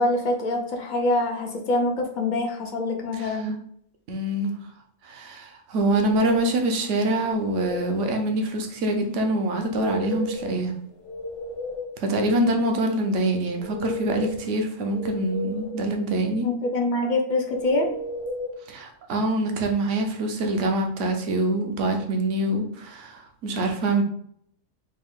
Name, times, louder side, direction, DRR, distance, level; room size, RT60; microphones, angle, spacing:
voice 1, 0.0-3.6 16.4-17.9, left 2 dB, 50° left, 2 dB, 0.6 m, -25 dB
voice 2, 3.1-3.5 4.1-4.5 5.0-10.7 12.0-16.5 18.7-24.0, right 1 dB, 65° right, 4 dB, 1.0 m, -25 dB
sound 1, 5.8-6.6 7.1-8.0 9.5-10.5 10.9-12.0 13.4-14.5 14.9-15.9 17.5-18.5, equal, 65° left, 1.4 m, -34 dB
4.3 x 2.4 x 3.6 m, 0.67 s
omnidirectional pair, 1.4 m